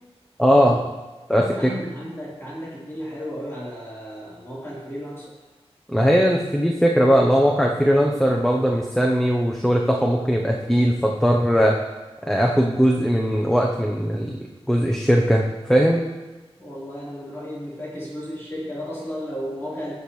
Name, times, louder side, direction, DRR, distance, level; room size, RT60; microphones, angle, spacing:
voice 1, 0.4-0.8 1.3-1.4 5.9-11.7 12.3-14.4 14.7-15.4 15.7-16.0, equal, 5° left, -1 dB, 0.9 m, -19 dB
voice 2, 1.4-5.3 16.6-19.9, equal, 25° left, -9 dB, 3.9 m, -33 dB
17.0 x 7.3 x 3.2 m, 1.2 s
wide cardioid pair, 90°, 11 cm